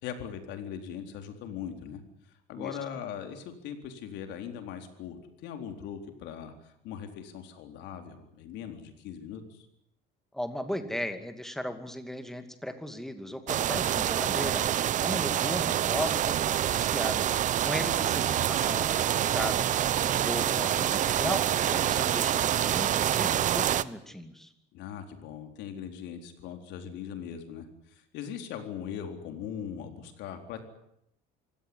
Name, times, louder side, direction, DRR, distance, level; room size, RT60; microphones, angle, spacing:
voice 1, 0.0-2.0 2.5-9.7 17.8-17.9 24.7-30.6, left 8 dB, 70° left, 6 dB, 4.1 m, -40 dB
voice 2, 10.3-14.6 15.0-17.3 17.6-19.7 20.0-21.4 21.7-24.5, left 1 dB, ahead, 8 dB, 2.5 m, -36 dB
sound 1, 13.5-23.8, right 11 dB, 40° right, 0.9 m, -27 dB
25.5 x 17.0 x 9.8 m, 0.77 s
cardioid pair, 135°, 19 cm